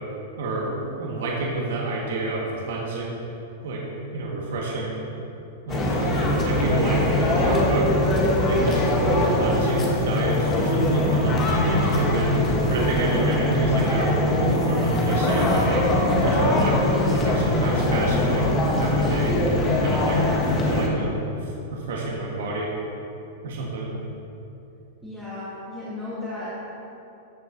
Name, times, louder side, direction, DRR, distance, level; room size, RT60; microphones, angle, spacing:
voice 1, 0.4-3.2 3.6-3.8 4.1-5.0 5.6-7.9 8.4-8.8 9.1-12.3 12.7-14.2 14.6-15.8 16.2-19.3 19.8-20.2 20.5-22.7 23.4-24.0, right 2 dB, 75° right, -3 dB, 1.7 m, -28 dB
sound 1, 5.7-20.9, left 1 dB, 20° left, 1.2 m, -22 dB
voice 2, 25.0-26.5, left 2 dB, ahead, -12 dB, 1.6 m, -35 dB
13.5 x 8.1 x 2.8 m, 2.9 s
supercardioid pair, 160°, 0 cm